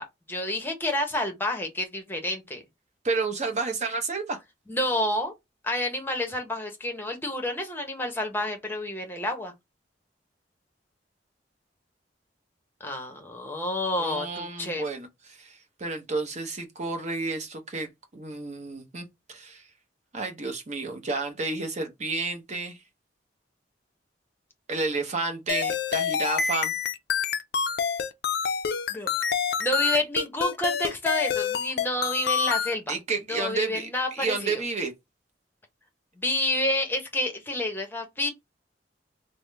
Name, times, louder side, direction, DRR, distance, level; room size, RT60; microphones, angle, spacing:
voice 1, 0.0-2.6 4.7-5.3 5.6-9.5 12.8-14.8 28.9-29.1 29.6-32.9 33.3-34.6 36.2-38.3, left 1 dB, 10° left, 0.8 m, -29 dB
voice 2, 3.0-4.4 14.0-19.6 20.1-22.8 24.7-26.7 32.9-34.9, right 3 dB, 40° right, 0.8 m, -31 dB
sound 1, 25.5-32.7, left 7 dB, 60° left, 0.4 m, -27 dB
3.6 x 2.0 x 3.2 m
head